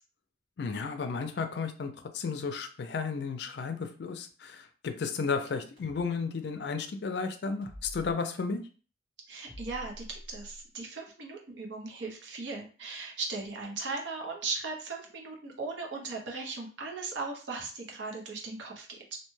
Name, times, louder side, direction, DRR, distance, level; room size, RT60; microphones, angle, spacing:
voice 1, 0.6-8.6, left 5 dB, 65° left, 8 dB, 0.4 m, -33 dB
sound 1, 5.8-6.0 7.6-8.1 9.5-10.6, equal, 60° right, 1.5 m, -46 dB
voice 2, 9.3-19.2, right 3 dB, 85° right, 0 dB, 0.7 m, -38 dB
2.7 x 2.2 x 3.1 m, 0.39 s
head